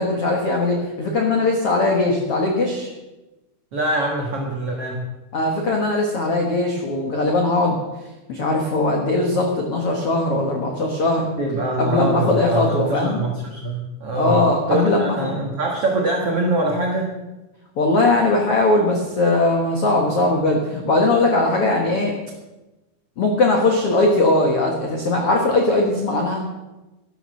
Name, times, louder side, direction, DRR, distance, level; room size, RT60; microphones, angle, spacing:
voice 1, 0.0-2.9 5.3-7.8 8.3-11.3 11.8-13.2 14.1-15.3 17.8-22.1 23.2-26.4, left 2 dB, 90° left, 1 dB, 1.2 m, -20 dB
voice 2, 3.7-5.1 11.4-17.1, right 2 dB, 70° right, 0 dB, 1.4 m, -24 dB
13.0 x 12.0 x 6.4 m, 1.1 s
omnidirectional pair, 5.3 m